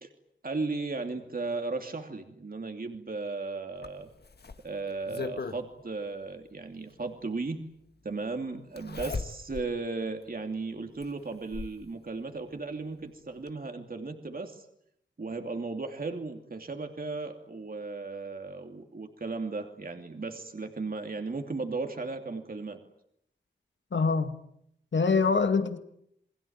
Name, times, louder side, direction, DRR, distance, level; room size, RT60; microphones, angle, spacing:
voice 1, 0.4-4.1 4.6-7.6 8.0-14.7 15.2-22.8, right 3 dB, 50° right, 5 dB, 2.8 m, -36 dB
Zipper (clothing), 3.8-5.6 7.0-7.1 8.8-9.7 10.2-10.3 11.0-11.8 13.0-13.1 13.5-13.6, left 4 dB, 60° left, 1.7 m, -38 dB
voice 2, 23.9-24.3 24.9-25.8, left 4 dB, 80° left, 8 dB, 2.1 m, -24 dB
29.0 x 21.5 x 8.8 m, 0.74 s
wide cardioid pair, 80°, 19 cm